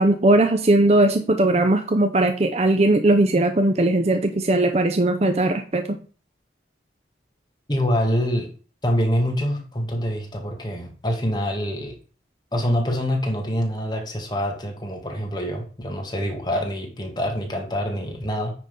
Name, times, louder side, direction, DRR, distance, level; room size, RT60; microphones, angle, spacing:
voice 1, 0.0-5.9, right 2 dB, 35° right, 6 dB, 0.6 m, -19 dB
voice 2, 7.7-8.5 8.8-12.0 12.5-18.5, equal, 25° left, 2 dB, 1.9 m, -25 dB
9.4 x 3.8 x 5.3 m, 0.39 s
head